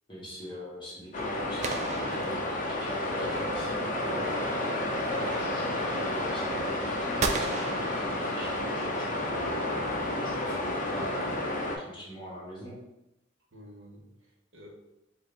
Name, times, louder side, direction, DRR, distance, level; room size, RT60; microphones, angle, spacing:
voice 1, 0.1-4.4 5.1-9.9 10.2-12.8, equal, 25° left, -7 dB, 1.3 m, -43 dB
sound 1, 1.1-11.8, left 2 dB, 40° left, 0.6 m, -31 dB
sound 2, 1.6-3.1 7.2-8.8, right 4 dB, 35° right, 0.3 m, -35 dB
sound 3, 3.1-9.5, right 1 dB, 5° right, 1.2 m, -38 dB
voice 2, 13.5-14.7, equal, 85° right, -1 dB, 1.0 m, -51 dB
4.6 x 2.6 x 3.3 m, 0.89 s
head